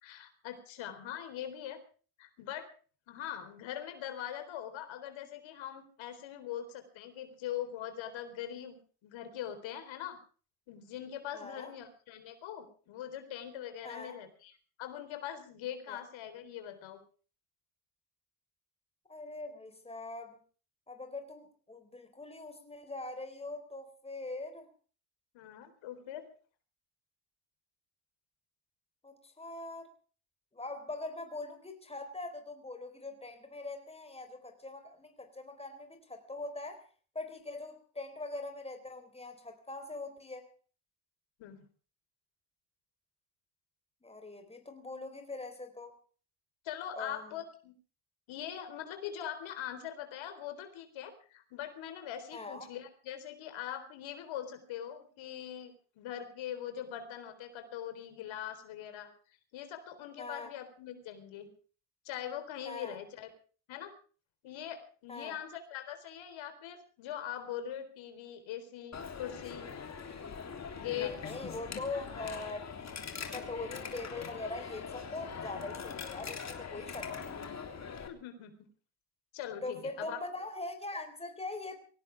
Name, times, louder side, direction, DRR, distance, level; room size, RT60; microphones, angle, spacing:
voice 1, 0.0-1.8 2.2-2.7 3.1-10.2 10.7-14.5 14.8-17.0 25.3-26.3 41.4-41.6 46.6-47.7 48.3-61.5 62.0-63.3 63.7-63.9 64.4-69.7 70.7-71.1 78.1-78.7 79.3-80.2, left 10 dB, 85° left, 8 dB, 4.1 m, -42 dB
voice 2, 11.3-11.7 13.8-14.1 15.9-16.0 19.1-20.4 20.9-24.7 29.0-29.9 30.5-36.8 37.1-40.5 44.0-45.9 47.0-47.3 52.3-52.7 60.2-60.5 62.6-63.0 65.1-65.4 70.9-72.7 73.2-77.3 79.6-81.8, left 2 dB, 15° left, 6 dB, 4.0 m, -42 dB
Coin (dropping), 68.9-78.1, left 6 dB, 35° left, 3.3 m, -42 dB
23.0 x 18.0 x 3.5 m, 0.40 s
cardioid pair, 120°, 45 cm